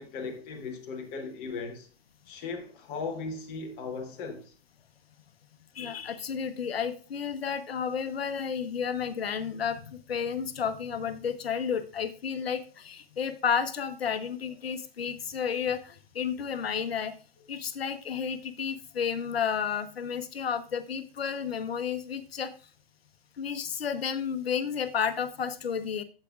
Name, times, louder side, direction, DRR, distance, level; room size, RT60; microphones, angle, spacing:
voice 1, 0.0-1.9 2.3-4.5, left 4 dB, 20° left, 0.9 m, -37 dB
voice 2, 5.7-17.1 17.5-22.5 23.4-26.0, left 7 dB, 70° left, 0.9 m, -31 dB
14.5 x 4.9 x 2.4 m
hypercardioid pair, 150°, 31 cm